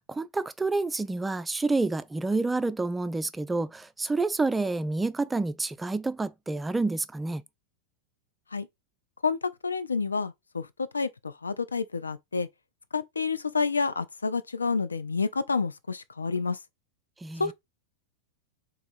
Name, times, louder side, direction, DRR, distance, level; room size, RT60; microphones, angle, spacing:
voice 1, 0.0-7.4 17.2-17.5, right 3 dB, 10° right, 0.3 m, -28 dB
voice 2, 9.2-12.5 12.9-16.6 17.4-17.5, left 4 dB, 75° left, 0.4 m, -29 dB
3.5 x 3.5 x 4.2 m
figure-of-eight pair, 90°, 0 cm